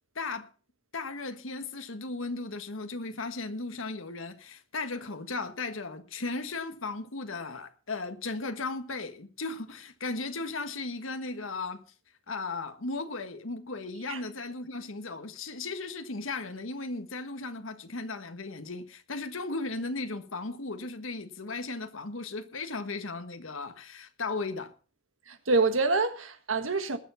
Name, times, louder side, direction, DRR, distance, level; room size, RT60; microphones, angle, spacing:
voice 1, 0.1-0.5 0.9-11.8 12.3-24.7, left 3 dB, 85° left, 1.5 m, -36 dB
voice 2, 25.3-27.0, right 3 dB, 85° right, 1.5 m, -26 dB
20.0 x 7.1 x 5.7 m
head